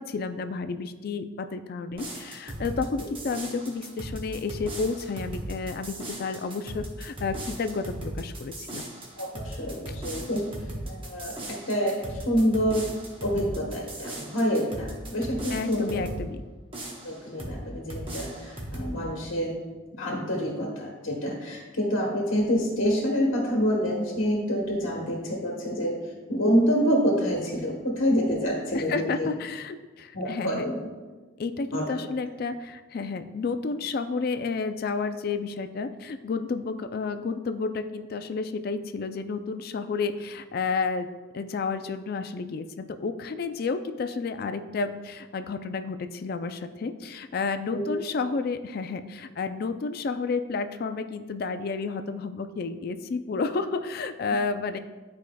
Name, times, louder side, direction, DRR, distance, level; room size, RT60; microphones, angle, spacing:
voice 1, 0.0-8.8 9.9-10.0 15.5-16.4 28.7-30.6 31.4-41.1 41.3-54.8, left 4 dB, 50° left, 9 dB, 0.3 m, -31 dB
sound 1, 1.9-16.3 16.7-17.6 17.9-18.9, right 1 dB, 25° right, 1.0 m, -38 dB
voice 2, 9.2-10.4 10.8-12.9 13.2-16.0 17.0-19.6 19.9-25.9 26.3-29.3 30.1-30.8 31.7-32.0 47.7-47.9, equal, 90° left, -2 dB, 1.2 m, -27 dB
10.5 x 4.7 x 2.3 m, 1.3 s
head